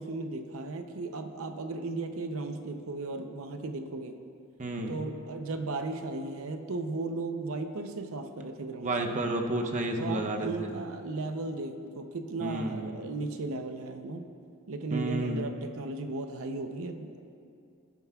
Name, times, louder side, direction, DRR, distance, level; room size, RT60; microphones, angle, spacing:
voice 1, 0.0-4.2 4.9-8.9 10.0-14.3 14.7-17.1, right 3 dB, 70° right, 6 dB, 0.6 m, -36 dB
voice 2, 4.6-5.0 8.8-10.7 12.4-13.0 14.9-15.4, right 1 dB, 35° right, 3 dB, 0.7 m, -31 dB
19.0 x 9.2 x 2.3 m, 2.5 s
head